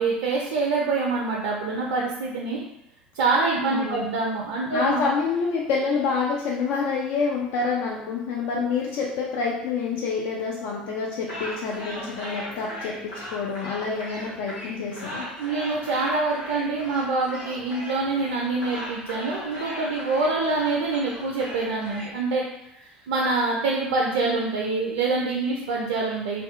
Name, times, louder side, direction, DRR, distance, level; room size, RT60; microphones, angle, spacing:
voice 1, 0.0-2.6 3.1-5.0 15.4-22.4 22.8-26.4, right 3 dB, 70° right, -2 dB, 0.3 m, -25 dB
voice 2, 3.7-4.0 4.7-15.3, left 5 dB, 60° left, -3 dB, 0.4 m, -27 dB
sound 1, 11.3-22.1, equal, 75° left, 1.1 m, -38 dB
2.5 x 2.3 x 2.4 m, 0.82 s
figure-of-eight pair, 65°, 5 cm